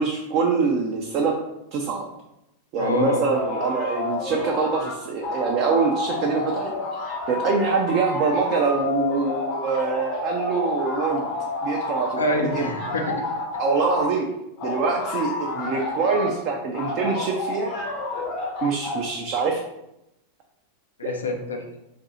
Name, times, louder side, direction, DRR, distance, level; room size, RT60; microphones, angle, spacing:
voice 1, 0.0-1.3 1.7-2.1 2.7-6.7 7.3-11.3 11.6-12.2 12.5-12.7 13.6-14.2 14.6-17.7 18.6-19.6 21.0-21.1, right 4 dB, 40° right, 0 dB, 0.4 m, -24 dB
voice 2, 2.8-3.2 12.2-13.1 21.0-21.6, left 2 dB, 70° left, 3 dB, 0.5 m, -26 dB
sound 1, 3.3-4.9 5.2-14.1 14.6-16.3 16.7-19.1, left 2 dB, 40° left, 0.8 m, -30 dB
2.6 x 2.5 x 4.0 m, 0.88 s
figure-of-eight pair, 90°, 0 cm